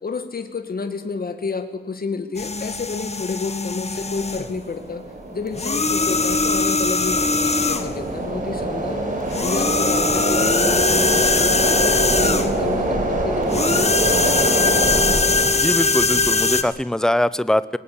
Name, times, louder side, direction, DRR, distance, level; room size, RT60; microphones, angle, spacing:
voice 1, 0.0-5.0 5.3-9.0 9.4-15.5, left 4 dB, 60° left, 7 dB, 2.0 m, -30 dB
sound 1, 2.4-4.5 5.5-8.0 9.3-12.6 13.5-16.6, left 3 dB, 40° left, 1.6 m, -21 dB
sound 2, 3.9-15.5, right 2 dB, 50° right, 5.9 m, -25 dB
voice 2, 15.6-17.8, left 1 dB, 5° left, 16 dB, 0.7 m, -22 dB
21.0 x 18.5 x 8.7 m, 1.2 s
wide cardioid pair, 95°, 18 cm